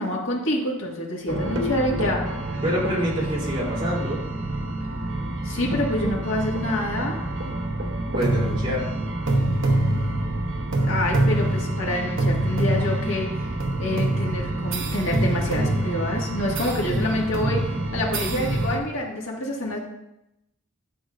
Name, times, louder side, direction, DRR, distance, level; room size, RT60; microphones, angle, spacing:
voice 1, 0.0-2.3 5.5-7.2 10.8-13.5 13.8-19.8, left 1 dB, 75° left, -2 dB, 1.9 m, -27 dB
sound 1, 1.3-18.8, right 1 dB, 65° right, 1.0 m, -26 dB
voice 2, 2.6-4.2 8.1-8.9, equal, 25° right, -6 dB, 3.1 m, -26 dB
11.5 x 6.3 x 2.5 m, 0.86 s
head